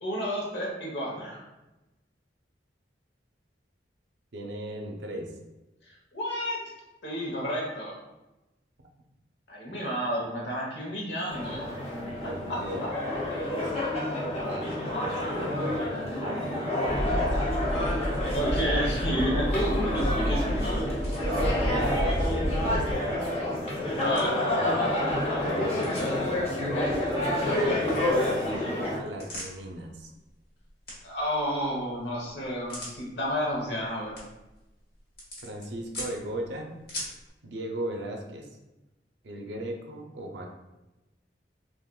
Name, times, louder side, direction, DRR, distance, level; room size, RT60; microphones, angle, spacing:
voice 1, 0.0-1.4 6.1-6.6 7.0-7.9 9.5-11.6 12.5-12.6 18.3-20.9 24.0-24.4 31.0-34.2, equal, 80° left, -3 dB, 1.0 m, -31 dB
voice 2, 4.3-5.3 12.1-12.9 13.2-13.7 14.5-14.7 15.2-15.8 16.1-17.5 17.8-17.9 21.2-23.3 24.4-24.9 25.4-25.8 26.6-28.0 28.3-30.1 35.4-36.8 37.4-38.5 39.2-40.6, right 1 dB, 75° right, 2 dB, 0.5 m, -37 dB
sound 1, 11.3-29.0, left 1 dB, 35° left, 0.7 m, -29 dB
sound 2, 16.9-22.9, equal, 5° right, 1.0 m, -30 dB
sound 3, 19.1-37.3, left 1 dB, 60° left, 1.2 m, -47 dB
3.6 x 2.5 x 2.2 m, 1.0 s
head